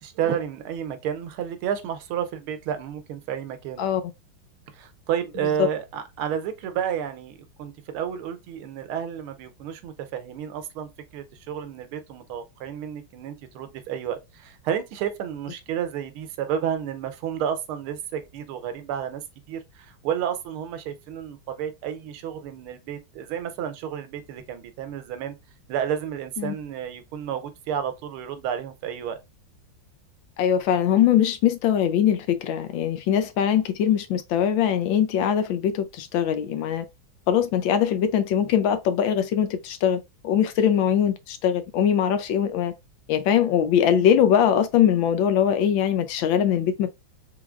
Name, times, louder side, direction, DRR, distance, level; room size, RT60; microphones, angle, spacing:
voice 1, 0.0-3.8 4.7-19.2 19.5-25.3 25.7-29.2, right 9 dB, 90° right, 1.6 m, -31 dB
voice 2, 30.4-36.8 37.3-42.7 43.1-46.9, left 9 dB, 75° left, 1.3 m, -22 dB
4.7 x 3.7 x 2.4 m
omnidirectional pair, 2.3 m